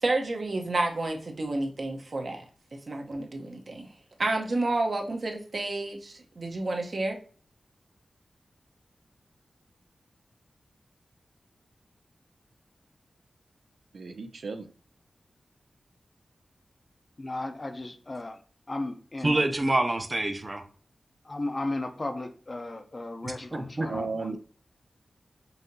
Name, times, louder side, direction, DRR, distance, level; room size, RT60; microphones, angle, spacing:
voice 1, 0.0-2.4 2.9-3.9 4.2-7.2, right 2 dB, 60° right, 0.8 m, -30 dB
voice 2, 13.9-14.7 23.9-24.4, right 4 dB, 80° right, 0.3 m, -34 dB
voice 3, 17.2-18.4 18.7-19.4 21.2-24.4, left 2 dB, 40° left, 0.5 m, -35 dB
voice 4, 19.2-20.6 23.2-23.9, right 2 dB, 30° right, 0.6 m, -27 dB
5.5 x 2.7 x 2.6 m
wide cardioid pair, 70°, 0 cm